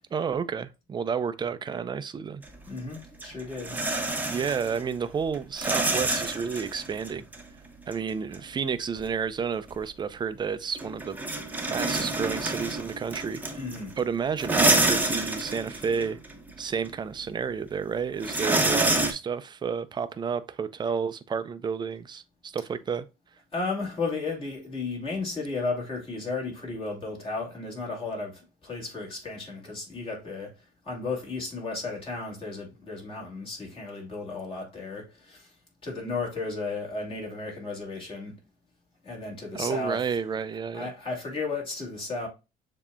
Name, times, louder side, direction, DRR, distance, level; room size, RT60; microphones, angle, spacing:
voice 1, 0.1-2.4 4.3-7.3 7.9-11.2 11.7-13.6 14.0-16.2 16.6-23.1 39.5-40.9, right 6 dB, 25° right, 0.4 m, -31 dB
sound 1, 2.4-2.5 3.0-4.9 5.2-7.4 7.9-8.0 8.3-8.4 9.0-9.1 9.7-9.8 10.7-14.0 14.4-16.6 16.8-16.9 18.2-19.1, right 2 dB, 10° right, 0.8 m, -27 dB
voice 2, 2.7-3.8 13.5-14.0 23.5-35.5 35.8-38.4 39.0-40.0 40.7-42.3, left 3 dB, 35° left, 2.6 m, -34 dB
7.0 x 2.8 x 2.3 m
cardioid pair, 110°, 17 cm